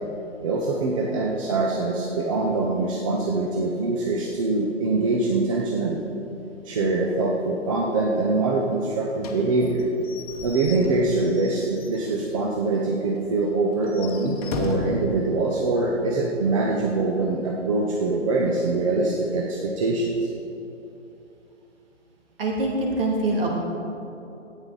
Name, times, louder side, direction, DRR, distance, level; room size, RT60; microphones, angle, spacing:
voice 1, 0.4-6.0 6.6-9.9 10.4-20.3, right 3 dB, 25° right, -2 dB, 0.7 m, -24 dB
Slam / Squeak / Wood, 9.2-12.4 12.8-12.9 13.2-13.3 13.7-15.1, left 3 dB, 30° left, 1.0 m, -35 dB
voice 2, 22.4-23.5, right 2 dB, 45° right, -1 dB, 2.4 m, -24 dB
13.0 x 9.2 x 3.9 m, 2.8 s
figure-of-eight pair, 140°, 38 cm